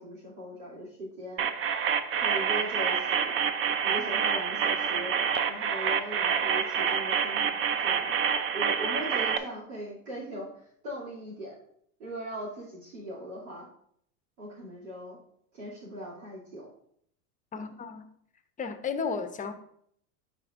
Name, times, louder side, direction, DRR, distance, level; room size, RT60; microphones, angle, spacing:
voice 1, 0.0-1.5 2.2-3.4 3.8-5.1 5.5-8.1 8.5-11.5 12.0-13.7 14.4-15.2 15.5-16.7 17.5-17.6, equal, 85° right, 2.7 m, -39 dB
sound 1, 1.4-9.4, right 7 dB, 30° right, 0.5 m, -27 dB
voice 2, 17.5-18.1 18.6-19.5, left 5 dB, 20° left, 0.6 m, -33 dB
10.5 x 4.4 x 2.5 m
supercardioid pair, 110°, 43 cm